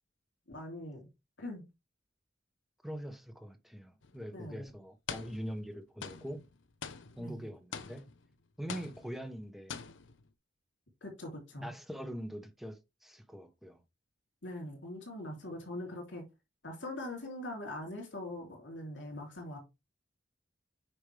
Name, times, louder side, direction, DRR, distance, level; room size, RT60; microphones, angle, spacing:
voice 1, 0.5-1.1 1.4-1.6 4.3-4.6 7.2-7.5 11.0-11.7 14.4-16.3 16.6-19.6, left 1 dB, 70° left, 3.2 m, -42 dB
voice 2, 2.8-6.5 7.2-8.1 8.6-9.8 11.6-13.8, equal, ahead, 1.1 m, -43 dB
sound 1, 4.0-4.2 5.1-5.7 6.0-8.3 8.7-9.4 9.7-10.3, left 6 dB, 85° left, 0.9 m, -45 dB
8.7 x 5.2 x 3.4 m
head